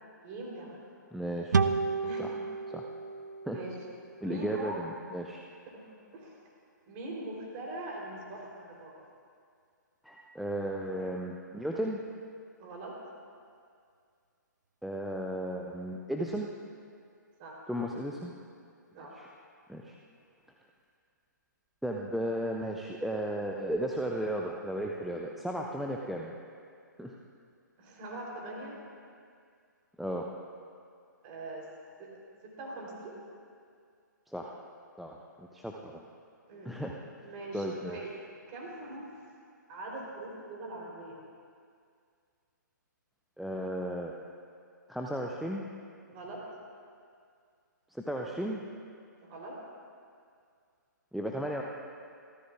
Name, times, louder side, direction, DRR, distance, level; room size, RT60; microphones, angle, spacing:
voice 1, 0.2-0.8 2.0-2.3 3.5-3.7 4.2-4.7 5.7-5.8 6.1-6.3 6.9-9.0 12.6-12.9 17.4-17.6 18.9-19.2 27.8-28.8 31.2-31.7 32.0-33.1 36.5-36.7 37.2-38.1 38.5-39.2 39.7-41.2 46.1-46.4 49.2-49.5, right 2 dB, 30° right, -2 dB, 3.3 m, -42 dB
voice 2, 1.1-1.6 2.2-2.3 2.7-2.8 3.5-3.6 4.2-5.4 10.0-12.0 14.8-16.5 17.7-18.3 19.0-19.3 19.7-19.9 21.8-26.3 27.0-27.1 30.0-30.3 34.3-34.6 35.0-36.0 36.7-37.0 37.5-38.0 43.4-44.1 44.9-45.6 47.9-48.6 51.1-51.6, equal, ahead, -1 dB, 0.5 m, -35 dB
sound 1, 1.5-4.9, right 5 dB, 65° right, 0.6 m, -32 dB
27.5 x 13.5 x 2.4 m, 2.3 s
figure-of-eight pair, 130°, 11 cm